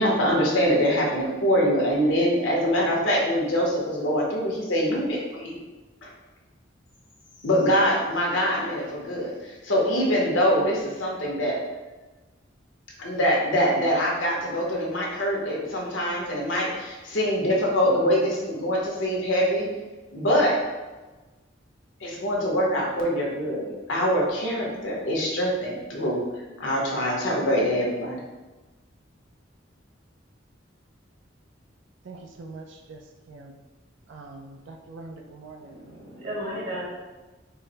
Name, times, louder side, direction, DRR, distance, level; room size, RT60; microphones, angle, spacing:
voice 1, 0.0-5.6 6.0-6.1 7.4-11.6 13.0-19.7 20.1-20.6 22.0-26.2 26.6-28.2, equal, 80° left, -3 dB, 0.9 m, -24 dB
voice 2, 32.0-33.0 33.3-33.5 34.1-35.7, right 3 dB, 75° right, 3 dB, 0.4 m, -43 dB
voice 3, 35.6-36.8, equal, 55° right, -6 dB, 1.3 m, -34 dB
3.9 x 2.0 x 3.9 m, 1.2 s
head